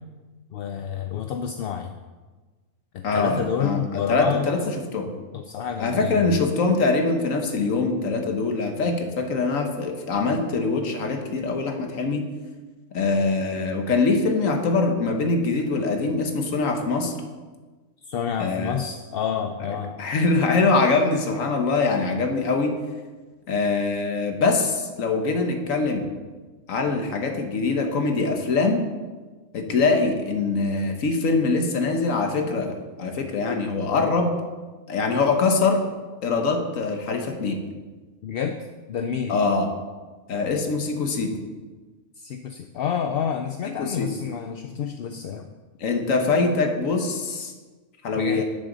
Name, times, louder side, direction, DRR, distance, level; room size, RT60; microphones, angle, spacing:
voice 1, 0.5-2.0 2.9-4.5 5.3-6.4 18.1-19.9 34.0-34.1 38.2-38.6 38.9-39.4 42.2-45.5 48.1-48.4, left 7 dB, 60° left, 6 dB, 0.6 m, -29 dB
voice 2, 3.0-5.1 5.8-12.3 12.9-17.1 18.4-18.8 19.7-22.8 23.5-26.1 26.7-28.8 29.5-34.4 34.9-35.8 36.2-37.6 39.3-39.7 40.3-41.4 43.8-44.1 45.8-47.5 48.0-48.4, left 3 dB, 85° left, 4 dB, 1.5 m, -23 dB
12.0 x 7.0 x 3.9 m, 1.3 s
omnidirectional pair, 1.3 m